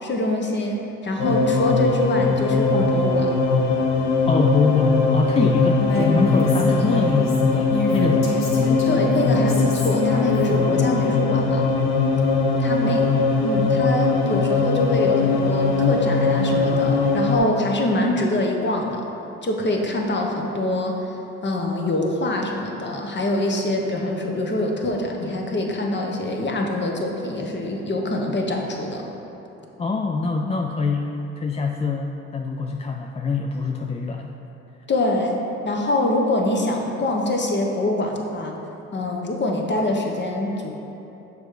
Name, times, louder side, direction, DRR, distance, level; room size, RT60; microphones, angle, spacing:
voice 1, 0.0-3.3 8.9-11.7 12.6-13.1 13.4-19.0 19.4-21.2 21.4-29.0 34.9-35.4 35.6-38.5 38.9-40.7, left 1 dB, 35° left, 1 dB, 1.0 m, -24 dB
sound 1, 1.2-17.4, left 4 dB, 90° left, 0.5 m, -20 dB
voice 2, 4.3-8.5 29.8-34.3, left 4 dB, 20° left, 2 dB, 0.3 m, -24 dB
Female speech woman speaking, 5.8-10.9, left 2 dB, 65° left, 1.4 m, -28 dB
6.5 x 3.3 x 4.9 m, 2.9 s
hypercardioid pair, 55°, 30 cm